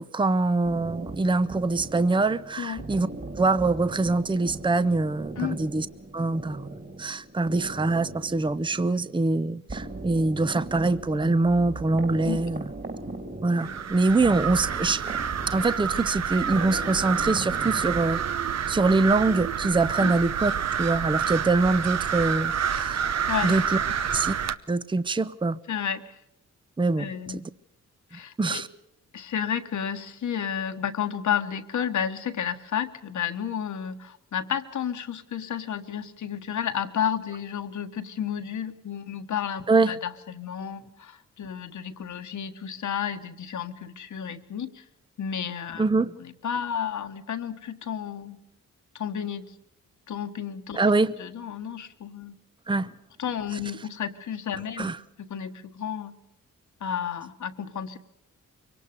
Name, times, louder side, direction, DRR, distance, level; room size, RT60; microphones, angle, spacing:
voice 1, 0.0-3.1 3.4-5.9 6.1-6.7 7.0-12.7 13.4-15.1 15.5-20.5 20.8-23.1 23.4-23.8 24.1-24.3 24.7-25.6 26.8-27.4 28.4-28.7 39.7-40.0 45.8-46.1 50.7-51.2 52.7-52.9 54.8-55.0, right 3 dB, 15° right, 0.7 m, -24 dB
sound 1, 0.6-18.8, right 2 dB, 35° right, 3.3 m, -39 dB
sound 2, 13.6-24.5, right 8 dB, 55° right, 0.9 m, -28 dB
voice 2, 25.7-26.2 27.0-27.4 28.1-28.6 29.1-44.8 45.2-45.8 46.2-48.4 48.9-49.5 50.1-50.8 51.2-52.3 53.2-54.9 55.3-56.1 56.8-58.0, left 8 dB, 70° left, 1.5 m, -32 dB
23.0 x 18.5 x 6.8 m
cardioid pair, 65°, 31 cm